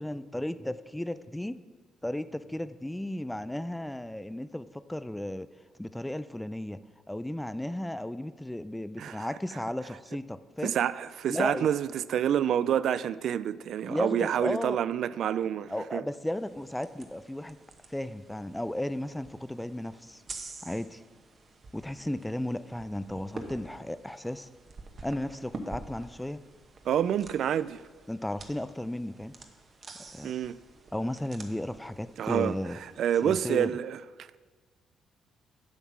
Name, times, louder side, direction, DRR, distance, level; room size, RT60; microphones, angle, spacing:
voice 1, 0.0-1.6 2.0-5.5 5.8-6.8 7.1-10.8 11.3-11.7 13.8-14.8 15.7-17.6 17.9-20.2 20.6-21.0 21.7-24.5 25.0-26.4 28.1-29.3 30.1-30.3 30.9-32.8 33.2-33.7, left 1 dB, 5° left, 0.4 m, -34 dB
voice 2, 10.6-16.0 26.9-27.8 30.2-30.6 32.2-34.0, right 9 dB, 70° right, 0.3 m, -28 dB
sound 1, 16.3-33.4, right 3 dB, 45° right, 1.1 m, -48 dB
8.1 x 7.2 x 5.9 m
cardioid pair, 90°, 0 cm